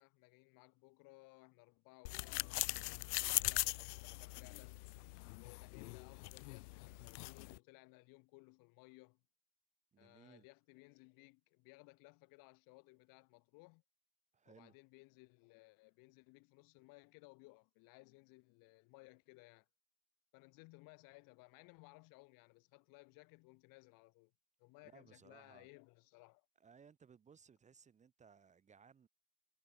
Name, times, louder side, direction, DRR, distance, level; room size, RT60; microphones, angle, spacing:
voice 1, 0.0-4.8 5.3-9.2 10.0-13.8 14.5-19.7 20.3-24.3 24.6-26.5, left 27 dB, 40° left, 1.9 m, -62 dB
sound 1, 2.1-7.6, left 22 dB, 70° left, 0.8 m, -41 dB
voice 2, 9.9-10.5 14.3-14.8 24.8-25.7 26.6-29.1, right 6 dB, 15° right, 1.5 m, -63 dB
supercardioid pair, 155°, 49 cm